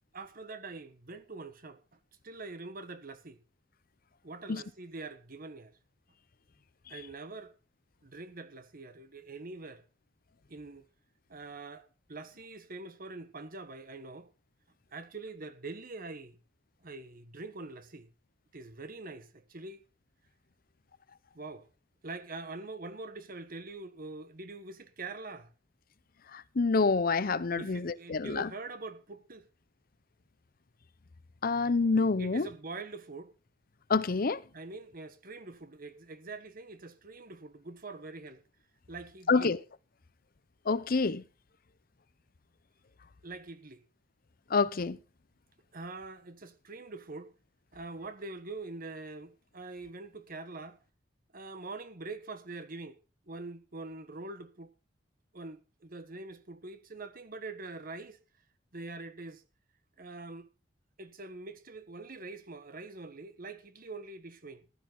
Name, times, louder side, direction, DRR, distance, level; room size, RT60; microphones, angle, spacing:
voice 1, 0.1-1.8 2.2-3.4 4.2-5.8 6.9-7.5 8.0-9.8 10.5-10.9 11.3-14.3 14.9-16.4 16.8-18.1 18.5-19.8 21.3-21.7 22.0-25.5 27.5-29.5 32.2-33.3 34.5-38.4 38.9-39.5 43.2-43.8 45.7-47.3 47.7-50.8 51.3-53.0 53.3-54.7 55.3-58.2 58.7-59.4 60.0-60.5 61.0-64.8, right 3 dB, 50° right, 1.5 m, -44 dB
voice 2, 26.3-28.5 31.4-32.5 33.9-34.4 39.3-39.6 40.7-41.2 44.5-45.0, left 4 dB, 50° left, 0.7 m, -27 dB
14.5 x 12.5 x 3.9 m
head